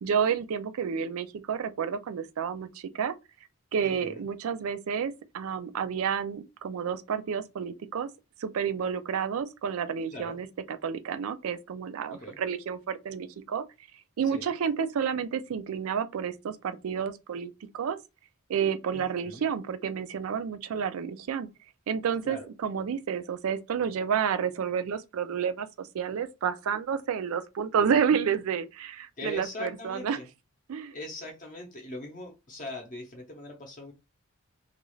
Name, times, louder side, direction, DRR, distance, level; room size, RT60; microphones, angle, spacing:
voice 1, 0.0-3.1 3.7-8.1 8.4-10.5 10.8-13.6 14.2-18.0 18.5-21.5 21.9-30.2 30.7-30.9, right 7 dB, 65° right, 0.3 m, -30 dB
voice 2, 3.8-4.2 10.1-10.4 12.1-12.4 14.3-14.5 18.9-19.4 22.2-22.5 29.2-30.3 30.9-33.9, left 2 dB, 35° left, 0.7 m, -41 dB
2.4 x 2.3 x 3.0 m
head